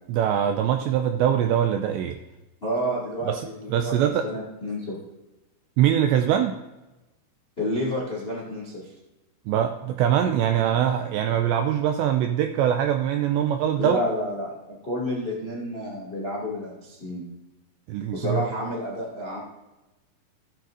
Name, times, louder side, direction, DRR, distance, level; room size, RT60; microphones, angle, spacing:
voice 1, 0.1-2.2 3.3-4.2 5.8-6.5 9.5-14.0 17.9-18.4, right 10 dB, 90° right, 6 dB, 2.5 m, -23 dB
voice 2, 2.6-5.0 7.6-8.9 13.8-17.2 18.1-19.4, equal, 40° left, -4 dB, 0.8 m, -30 dB
15.5 x 9.2 x 2.6 m, 1.0 s
omnidirectional pair, 5.7 m